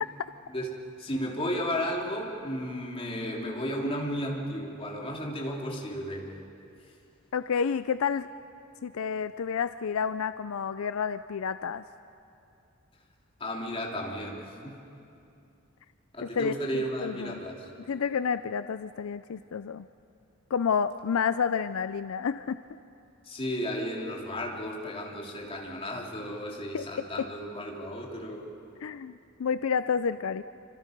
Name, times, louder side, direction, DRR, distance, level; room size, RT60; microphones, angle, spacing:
voice 1, 1.0-6.3 13.4-14.8 16.1-17.7 23.2-28.5, equal, 25° left, -2 dB, 3.3 m, -34 dB
voice 2, 7.3-8.3 8.8-11.8 16.2-17.4 17.9-19.9 20.5-22.6 26.7-27.3 28.8-30.4, left 6 dB, 75° left, 13 dB, 0.4 m, -30 dB
28.5 x 25.5 x 5.3 m, 2.7 s
head